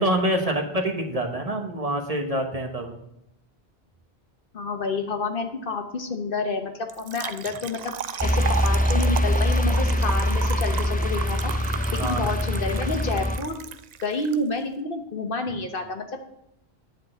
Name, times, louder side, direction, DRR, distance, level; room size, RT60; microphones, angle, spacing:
voice 1, 0.0-2.9 12.0-12.3, right 1 dB, 35° right, 4 dB, 1.2 m, -26 dB
voice 2, 4.5-7.9 8.2-11.5 12.0-13.6 14.0-16.2, left 3 dB, 60° left, 6 dB, 1.2 m, -29 dB
Trickle dribble / Fill (with liquid), 6.9-14.4, right 8 dB, 55° right, 0.5 m, -34 dB
sound 1, 8.2-13.4, left 1 dB, 10° left, 0.4 m, -23 dB
10.0 x 4.1 x 7.5 m, 0.81 s
omnidirectional pair, 1.1 m